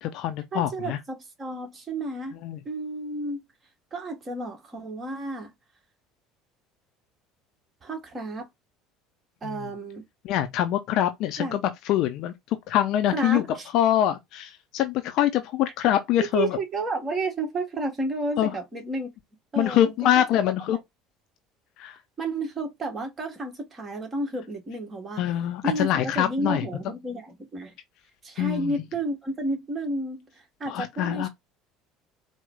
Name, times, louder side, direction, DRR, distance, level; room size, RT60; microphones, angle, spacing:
voice 1, 0.0-1.0 2.4-2.6 9.4-9.7 10.2-12.3 12.7-13.4 13.7-16.6 18.4-18.5 19.6-20.8 21.8-22.0 25.2-26.7 28.4-28.8 30.7-31.3, left 11 dB, 50° left, 0.5 m, -24 dB
voice 2, 0.5-2.4 2.6-3.4 3.9-5.5 7.8-8.5 9.4-10.0 11.4-11.6 13.1-13.7 16.3-19.1 19.5-19.9 20.7-20.8 22.2-25.2 25.6-27.7 28.2-30.3 30.6-31.3, right 2 dB, 30° right, 1.6 m, -31 dB
4.5 x 2.2 x 3.6 m
figure-of-eight pair, 60°, 0 cm